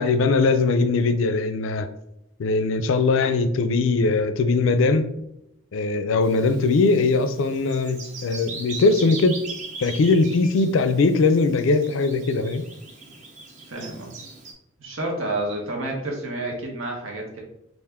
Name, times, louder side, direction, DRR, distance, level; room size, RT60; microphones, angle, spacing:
voice 1, 0.0-1.9 2.4-5.1 5.7-9.4 9.8-12.6, left 3 dB, 75° left, 10 dB, 0.4 m, -20 dB
Bird vocalization bird call bird song, 6.2-14.5, right 3 dB, 35° right, 0.6 m, -40 dB
voice 2, 13.7-14.1 14.8-17.4, right 2 dB, 85° right, 0 dB, 1.0 m, -29 dB
3.5 x 2.5 x 3.4 m, 0.81 s
head